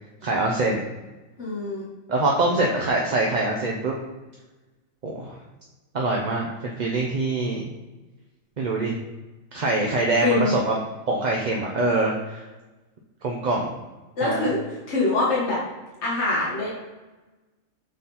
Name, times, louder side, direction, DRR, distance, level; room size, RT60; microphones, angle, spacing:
voice 1, 0.2-0.8 2.1-3.9 5.0-5.4 5.9-7.6 8.6-8.9 9.5-10.7 11.1-12.5 13.2-13.7 14.2-14.5, right 2 dB, 40° right, -1 dB, 0.7 m, -24 dB
voice 2, 1.4-1.9 10.2-10.5 14.2-14.6 14.9-15.6 16.0-16.7, left 3 dB, 55° left, -5 dB, 1.7 m, -24 dB
6.4 x 4.1 x 4.1 m, 1.1 s
omnidirectional pair, 1.4 m